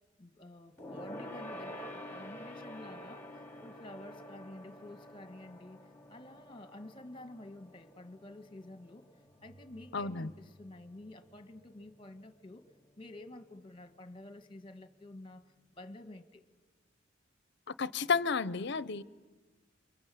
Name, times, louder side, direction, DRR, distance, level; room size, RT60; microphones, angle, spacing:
voice 1, 0.2-5.8 6.1-9.1 9.4-12.6 13.0-16.4, left 1 dB, 25° left, 1.6 m, -50 dB
Gong, 0.8-10.6 10.9-11.1 11.4-11.5, equal, 10° left, 2.7 m, -48 dB
sound 1, 9.2-12.1, right 1 dB, 55° right, 3.0 m, -61 dB
voice 2, 9.9-10.3 17.8-19.0, left 5 dB, 60° left, 0.8 m, -31 dB
28.5 x 24.0 x 8.5 m
head